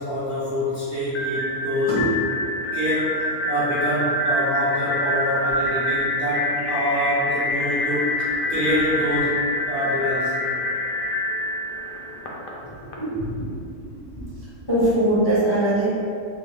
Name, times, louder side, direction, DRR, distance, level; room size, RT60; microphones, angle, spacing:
voice 1, 0.0-2.0 2.7-10.3, equal, 60° right, -9 dB, 0.7 m, -26 dB
sound 1, 1.1-12.9, left 1 dB, 85° left, 0.4 m, -26 dB
voice 2, 12.6-13.5 13.9-14.3 14.7-15.9, right 1 dB, 25° left, -10 dB, 0.6 m, -22 dB
3.5 x 2.4 x 3.1 m, 2.4 s
omnidirectional pair, 1.5 m